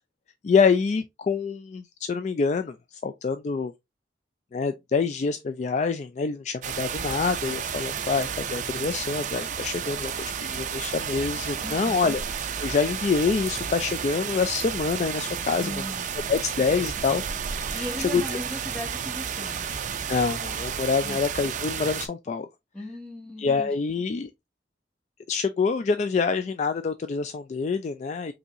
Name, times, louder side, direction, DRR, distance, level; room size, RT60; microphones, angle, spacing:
voice 1, 0.4-2.8 3.0-3.7 4.5-15.8 16.3-17.2 17.7-17.8 18.1-18.2 20.1-22.5 23.4-24.3 25.3-28.3, left 5 dB, 40° left, 0.3 m, -26 dB
sound 1, 6.6-22.1, right 7 dB, 45° right, 0.4 m, -32 dB
voice 2, 11.6-12.1 15.4-16.1 17.7-19.6 21.0-21.2 22.7-24.0, equal, 5° left, 1.7 m, -37 dB
5.4 x 2.7 x 2.6 m
head